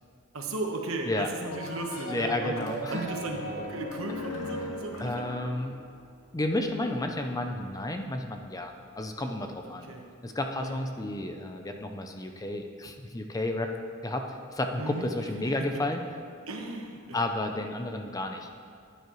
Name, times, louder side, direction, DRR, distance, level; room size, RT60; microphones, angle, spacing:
voice 1, 0.3-2.6 2.9-5.3 9.6-10.0 10.6-10.8 14.8-15.1 16.5-17.2, right 2 dB, 75° right, 2 dB, 1.2 m, -36 dB
sound 1, 1.4-5.8, left 2 dB, 80° left, 1.8 m, -38 dB
voice 2, 2.1-3.1 3.6-3.7 5.0-5.7 6.3-9.9 10.2-13.7 14.0-16.0 17.1-18.5, left 1 dB, 15° left, 5 dB, 0.5 m, -32 dB
Piano, 2.9-10.0, right 3 dB, 50° right, 0.9 m, -50 dB
12.5 x 9.4 x 3.1 m, 2.4 s
head